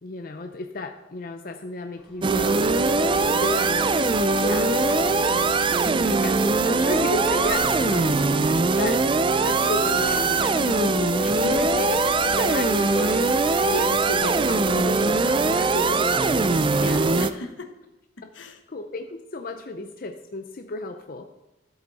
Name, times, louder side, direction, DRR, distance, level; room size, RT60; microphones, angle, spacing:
voice 1, 0.0-2.6 3.3-3.9 4.4-5.6 6.1-8.2 8.8-9.0 9.4-13.3 13.6-16.4 18.2-18.3 18.7-21.3, left 2 dB, 45° left, 6 dB, 0.5 m, -33 dB
sound 1, 2.0-17.3, equal, 5° right, 3.2 m, -44 dB
sound 2, 2.2-17.3, right 3 dB, 25° right, 0.4 m, -21 dB
voice 2, 3.3-4.0 11.2-11.7 16.8-17.7 18.2-18.6, left 2 dB, 80° left, 6 dB, 1.1 m, -38 dB
14.0 x 7.9 x 4.1 m, 1.0 s
head